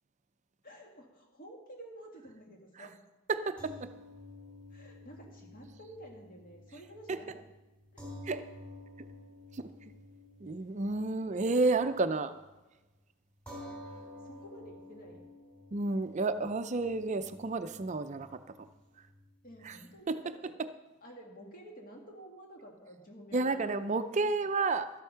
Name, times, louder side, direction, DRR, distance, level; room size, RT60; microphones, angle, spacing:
voice 1, 0.6-2.9 4.7-7.4 7.9-8.0 14.2-15.3 19.4-20.5 21.0-23.8, right 1 dB, 40° left, 0 dB, 2.1 m, -51 dB
voice 2, 3.3-3.9 7.1-7.2 8.2-8.5 9.6-9.7 10.4-12.3 15.7-18.3 19.6-19.8 20.1-20.2 20.6-20.7 23.3-24.9, right 3 dB, 35° right, 10 dB, 0.5 m, -31 dB
sound 1, 3.6-12.1 12.4-12.6 13.5-20.0, left 1 dB, 10° left, 3.5 m, -51 dB
12.5 x 8.1 x 5.7 m, 1.1 s
head